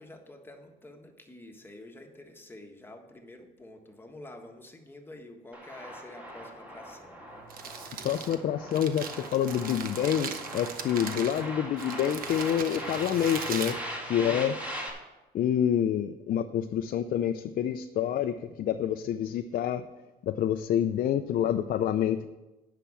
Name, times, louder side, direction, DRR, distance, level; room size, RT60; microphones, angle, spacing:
voice 1, 0.0-7.2 14.1-14.5, left 1 dB, 15° left, 3 dB, 1.4 m, -48 dB
sound 1, 5.5-14.9, equal, 10° right, 2.6 m, -40 dB
Crumpling crinkling, 7.3-14.6, right 6 dB, 60° right, 1.1 m, -40 dB
voice 2, 8.0-13.8 14.0-14.5 15.3-19.8 20.2-22.3, left 9 dB, 55° left, 7 dB, 0.5 m, -27 dB
10.0 x 6.0 x 7.4 m, 1.1 s
cardioid pair, 110°, 17 cm